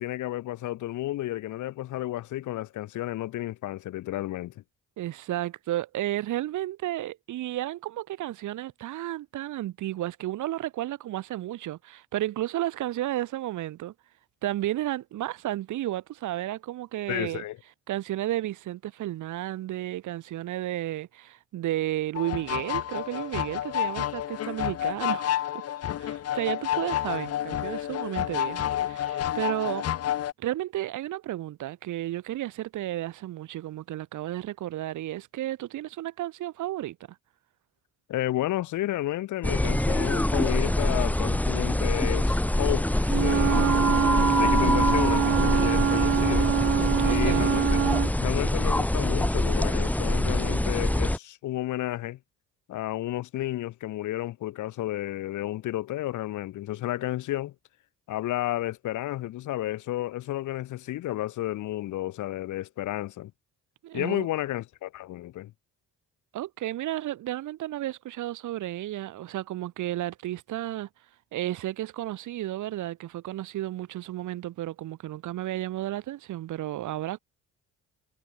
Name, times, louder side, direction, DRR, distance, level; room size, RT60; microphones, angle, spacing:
voice 1, 0.0-4.6 17.1-17.6 38.1-43.8 44.3-46.5 47.0-47.6 48.2-52.2 52.7-57.5 58.1-63.3 63.9-65.5, left 15 dB, 75° left, 1.1 m, -32 dB
voice 2, 5.0-13.9 14.4-17.4 17.9-25.7 26.0-29.9 30.4-37.0 47.0-47.5 63.8-64.3 66.3-70.9 71.3-77.2, right 14 dB, 80° right, 1.8 m, -32 dB
sound 1, 22.2-30.3, left 11 dB, 55° left, 0.7 m, -30 dB
sound 2, 39.4-51.2, left 1 dB, 5° left, 0.8 m, -24 dB
Wind instrument woodwind instrument, 43.0-48.1, right 10 dB, 55° right, 1.0 m, -25 dB
cardioid pair, 90°, 30 cm